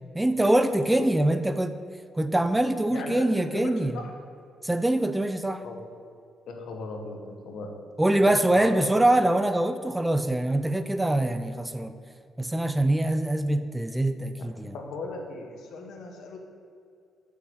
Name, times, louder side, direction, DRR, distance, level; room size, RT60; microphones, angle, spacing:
voice 1, 0.1-1.8 2.2-4.0 4.6-5.6 8.0-12.0 12.4-14.7, right 1 dB, 10° right, 10 dB, 0.4 m, -24 dB
voice 2, 2.9-4.0 5.6-5.8 6.5-7.7 8.5-8.9 14.7-16.4, left 3 dB, 75° left, 3 dB, 1.3 m, -37 dB
8.1 x 7.0 x 4.7 m, 2.5 s
cardioid pair, 90°, 0 cm